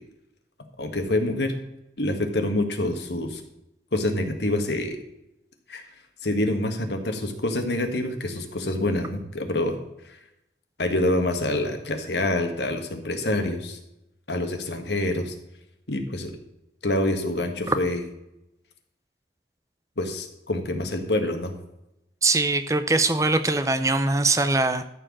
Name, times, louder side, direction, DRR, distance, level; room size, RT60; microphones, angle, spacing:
voice 1, 0.8-1.5 2.0-3.4 3.9-5.0 5.7-5.8 6.2-9.8 10.0-10.2 10.8-13.8 14.3-15.3 15.9-16.3 16.8-18.0 20.0-21.5, left 1 dB, 75° left, 5 dB, 1.7 m, -26 dB
voice 2, 22.2-24.8, right 3 dB, 15° right, 10 dB, 0.6 m, -22 dB
13.5 x 4.7 x 7.3 m, 0.87 s
head